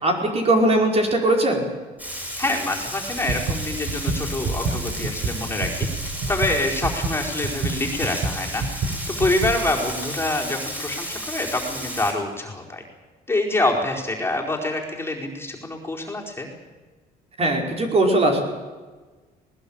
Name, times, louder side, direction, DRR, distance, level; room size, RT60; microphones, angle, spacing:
voice 1, 0.0-1.6 17.4-18.4, right 1 dB, 35° right, 2 dB, 4.9 m, -19 dB
Frying (food), 2.0-12.1, equal, 10° right, 7.5 m, -33 dB
voice 2, 2.4-5.9 6.3-12.8 13.3-16.5, left 2 dB, 15° left, -1 dB, 4.6 m, -26 dB
sound 1, 3.1-9.5, right 3 dB, 65° right, 5.2 m, -27 dB
20.0 x 20.0 x 8.9 m, 1.3 s
cardioid pair, 110°, 17 cm